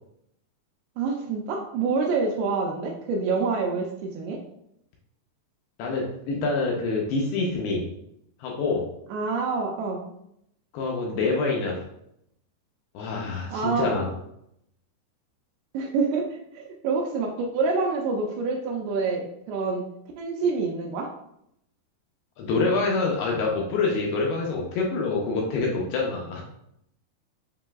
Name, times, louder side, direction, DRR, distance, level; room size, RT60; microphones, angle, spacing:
voice 1, 1.0-4.4 9.1-10.1 13.5-13.9 15.7-19.8 20.2-21.1, right 4 dB, 85° right, 1 dB, 2.3 m, -27 dB
voice 2, 5.8-7.9 8.4-8.9 10.7-11.8 12.9-14.1 22.4-26.4, left 3 dB, 80° left, -1 dB, 2.3 m, -26 dB
7.5 x 2.6 x 2.3 m, 0.76 s
omnidirectional pair, 4.9 m